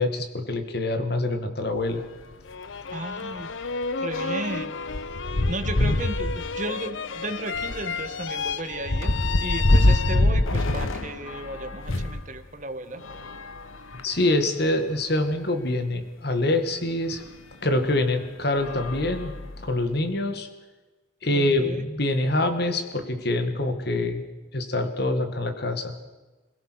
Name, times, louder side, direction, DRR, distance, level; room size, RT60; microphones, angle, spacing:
voice 1, 0.0-2.0 14.0-17.2 17.6-20.5 21.2-24.2 24.5-25.9, left 2 dB, 55° left, 8 dB, 2.1 m, -25 dB
sound 1, 1.8-1.9 2.3-2.4 2.8-12.2 13.0-14.3 15.0-15.1 15.3-15.4 17.1-17.3 17.9-18.1 18.5-19.8, left 1 dB, 90° left, 1.3 m, -26 dB
sound 2, 2.4-10.7, left 5 dB, 70° left, 0.7 m, -33 dB
voice 2, 2.9-3.5 4.0-5.1 5.5-9.1 9.4-13.0 21.3-21.8, right 2 dB, 40° right, 8 dB, 1.6 m, -34 dB
27.0 x 16.5 x 6.4 m, 1.2 s
head